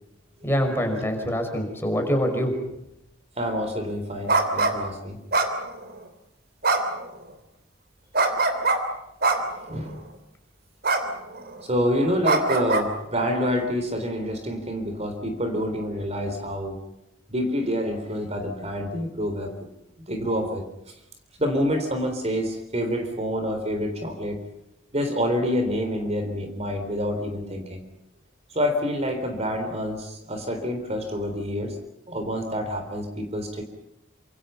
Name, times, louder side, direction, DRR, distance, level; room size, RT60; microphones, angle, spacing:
voice 1, 0.4-2.5, equal, 10° left, 3 dB, 5.6 m, -24 dB
voice 2, 3.4-5.2 9.7-10.0 11.6-16.8 17.3-19.5 20.1-20.6 21.4-24.4 24.9-27.8 28.5-31.8 32.1-33.6, equal, 30° right, 5 dB, 3.8 m, -27 dB
sound 1, 4.3-4.7 5.3-6.0 6.6-7.0 8.1-8.8 9.2-9.6 10.8-11.0 11.3-11.6 12.2-12.8, right 3 dB, 50° right, 3.4 m, -22 dB
28.0 x 27.0 x 5.7 m, 0.84 s
head